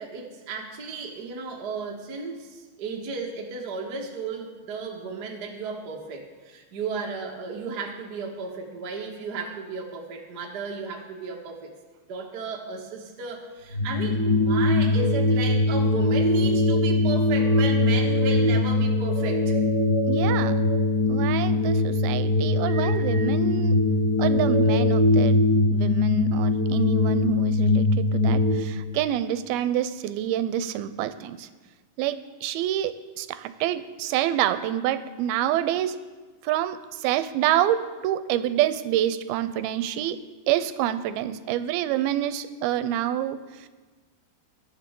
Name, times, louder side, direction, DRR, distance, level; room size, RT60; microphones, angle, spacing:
voice 1, 0.0-11.7 12.1-19.6, right 4 dB, 50° right, 0 dB, 1.2 m, -34 dB
sound 1, 13.7-28.5, left 2 dB, 35° left, 4.2 m, -21 dB
voice 2, 20.1-20.5 21.1-23.8 24.2-25.4 25.7-31.5 32.0-36.0 36.4-40.2 40.5-43.7, right 12 dB, 85° right, 12 dB, 2.4 m, -27 dB
21.0 x 10.0 x 3.7 m, 1.4 s
omnidirectional pair, 4.4 m